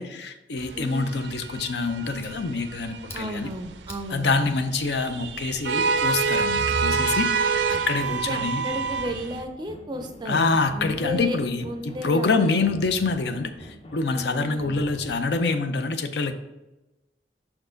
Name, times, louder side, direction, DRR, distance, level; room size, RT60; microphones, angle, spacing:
voice 1, 0.0-3.5 4.1-8.6 10.3-16.3, left 3 dB, 70° left, 8 dB, 0.6 m, -26 dB
sound 1, 0.6-9.4, right 5 dB, 80° right, 0.5 m, -28 dB
voice 2, 0.7-1.2 3.1-4.5 8.1-12.6 14.1-14.8, equal, 25° right, 5 dB, 0.4 m, -34 dB
Fire, 1.8-6.2, left 1 dB, 15° left, 1.0 m, -50 dB
sound 2, 7.7-15.5, equal, 30° left, 0.7 m, -45 dB
5.8 x 4.4 x 3.9 m, 1.0 s
head